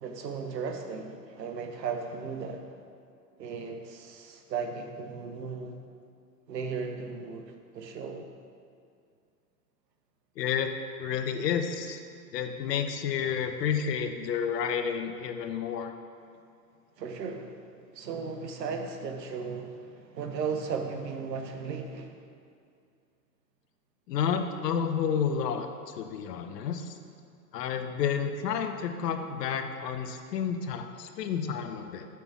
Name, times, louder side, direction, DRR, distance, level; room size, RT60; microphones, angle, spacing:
voice 1, 0.0-2.7 3.4-5.8 6.5-8.3 17.0-17.6 17.9-22.2, right 5 dB, 90° right, 4 dB, 0.9 m, -36 dB
voice 2, 10.4-10.7 11.0-12.0 12.3-15.9 24.1-26.9 27.5-32.1, left 7 dB, 75° left, 7 dB, 0.7 m, -30 dB
6.0 x 3.5 x 5.9 m, 2.4 s
hypercardioid pair, 115°, 48 cm